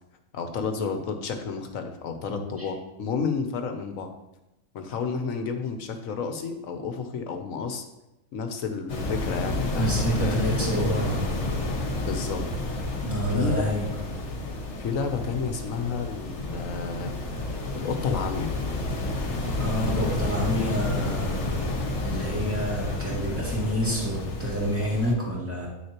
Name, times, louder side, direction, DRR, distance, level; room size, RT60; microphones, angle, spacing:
voice 1, 0.3-4.1 4.7-7.8 8.3-9.9 10.2-10.3 12.0-12.4 13.3-13.7 14.8-17.1 17.7-18.5, left 5 dB, 75° left, 6 dB, 1.2 m, -31 dB
voice 2, 2.3-2.7 9.8-11.2 13.0-13.9 19.6-21.5 22.0-25.7, equal, 10° right, -5 dB, 2.2 m, -28 dB
sound 1, 8.9-25.1, left 2 dB, 55° left, 1.4 m, -30 dB
9.5 x 6.5 x 3.0 m, 0.94 s
omnidirectional pair, 1.4 m